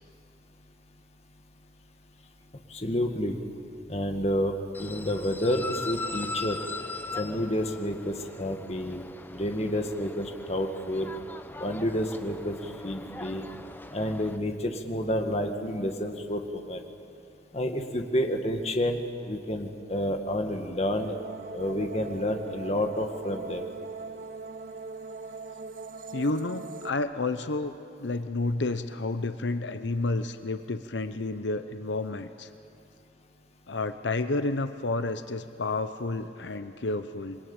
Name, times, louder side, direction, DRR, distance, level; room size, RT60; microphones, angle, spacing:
voice 1, 2.7-3.4 3.9-4.5 4.8-6.6 7.2-9.0 9.3-11.1 11.6-13.4 13.9-16.8 17.5-21.1 21.5-23.6, equal, 35° left, 4 dB, 1.9 m, -29 dB
sound 1, 4.7-14.4, left 3 dB, 10° left, 0.8 m, -40 dB
sound 2, 21.0-26.9, right 3 dB, 50° right, 0.8 m, -40 dB
voice 2, 26.1-27.7 28.0-32.5 33.7-37.4, left 2 dB, 90° left, 10 dB, 0.8 m, -30 dB
27.5 x 22.0 x 8.9 m, 2.7 s
head